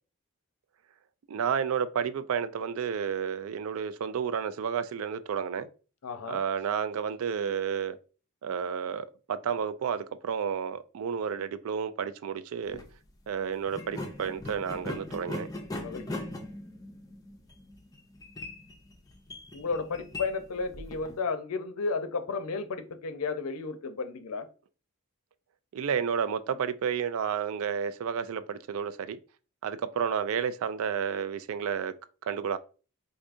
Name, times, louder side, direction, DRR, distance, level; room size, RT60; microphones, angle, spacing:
voice 1, 1.3-5.7 6.3-8.0 8.4-12.8 13.3-15.5 25.7-29.2 29.6-31.9 32.3-32.6, right 7 dB, 70° right, 0.3 m, -31 dB
voice 2, 6.0-6.4 15.8-16.2 19.5-24.5, left 4 dB, 80° left, 0.5 m, -33 dB
sound 1, 12.6-12.9 13.7-21.2, left 2 dB, 15° left, 0.4 m, -40 dB
4.8 x 2.6 x 2.5 m
head